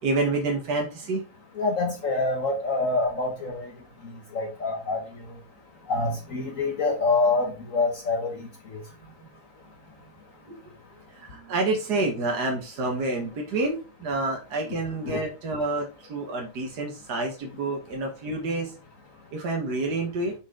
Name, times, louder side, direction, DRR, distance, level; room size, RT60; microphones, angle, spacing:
voice 1, 0.0-1.2 6.5-6.7 10.5-10.6 11.1-18.7 19.3-20.3, right 2 dB, 80° right, 1 dB, 1.9 m, -28 dB
voice 2, 1.5-3.6 4.3-5.0 5.9-8.3 15.0-15.2, left 3 dB, 55° left, 2 dB, 1.6 m, -26 dB
6.4 x 6.0 x 3.8 m, 0.33 s
omnidirectional pair, 1.7 m